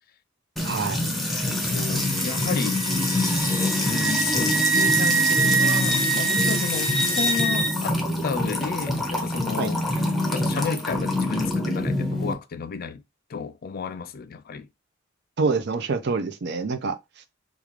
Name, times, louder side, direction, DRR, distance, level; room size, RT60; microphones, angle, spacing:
Music / Water tap faucet / Trickle dribble, 0.6-12.3, left 1 dB, ahead, 0.7 m, -25 dB
voice 1, 0.6-1.1 9.6-9.7 15.4-17.0, right 4 dB, 55° right, 0.5 m, -26 dB
voice 2, 1.3-2.8 3.8-13.0 13.3-14.7, left 5 dB, 50° left, 0.4 m, -32 dB
Wind instrument woodwind instrument, 2.0-7.7, right 4 dB, 75° right, 1.9 m, -25 dB
3.5 x 2.4 x 3.0 m
head